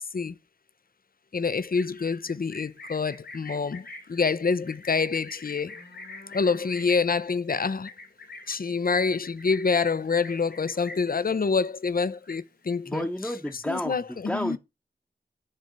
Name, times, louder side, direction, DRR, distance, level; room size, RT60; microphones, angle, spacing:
voice 1, 1.3-3.8 4.1-5.7 6.3-7.9 8.5-13.1 13.7-14.6, left 5 dB, 60° left, 0.5 m, -26 dB
Livestock farm animals working animals, 1.6-11.2 11.6-11.9 12.1-12.8 13.1-13.8, left 2 dB, 75° left, 1.8 m, -46 dB
voice 2, 12.8-14.6, equal, 5° left, 0.8 m, -31 dB
6.6 x 3.4 x 5.0 m
wide cardioid pair, 45°, 17 cm